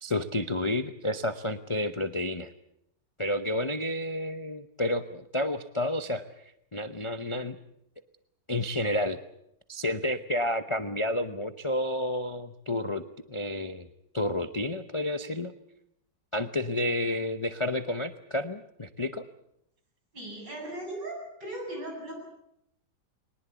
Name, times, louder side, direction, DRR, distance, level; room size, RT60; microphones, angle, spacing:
voice 1, 0.0-2.5 3.2-7.6 8.5-9.2 9.7-13.9 14.1-15.5 16.3-19.2, left 1 dB, 35° left, 9 dB, 0.5 m, -30 dB
voice 2, 20.1-22.2, right 1 dB, 70° right, 1 dB, 8.5 m, -38 dB
22.0 x 20.0 x 8.2 m, 0.75 s
omnidirectional pair, 1.9 m